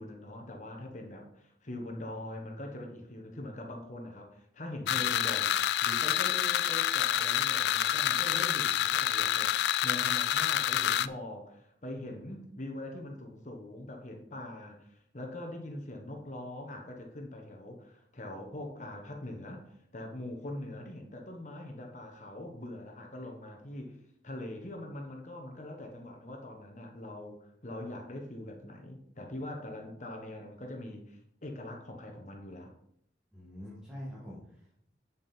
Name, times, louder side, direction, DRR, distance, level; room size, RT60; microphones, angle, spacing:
voice 1, 0.0-19.6 19.9-24.0 24.2-32.7, left 1 dB, 40° left, 3 dB, 1.3 m, -42 dB
sound 1, 4.9-11.1, left 11 dB, 65° left, 0.3 m, -28 dB
voice 2, 33.3-34.9, equal, 5° right, -7 dB, 2.1 m, -45 dB
8.4 x 7.2 x 4.4 m, 0.71 s
head